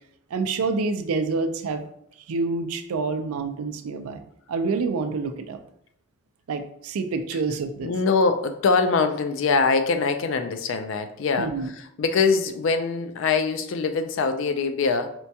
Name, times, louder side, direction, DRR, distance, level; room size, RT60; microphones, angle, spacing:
voice 1, 0.3-1.8 2.3-4.2 4.5-5.6 6.5-7.9 11.4-11.7, right 4 dB, 80° right, 7 dB, 0.4 m, -27 dB
voice 2, 7.8-15.2, left 4 dB, 60° left, 8 dB, 0.3 m, -23 dB
4.4 x 2.2 x 2.6 m, 0.71 s
head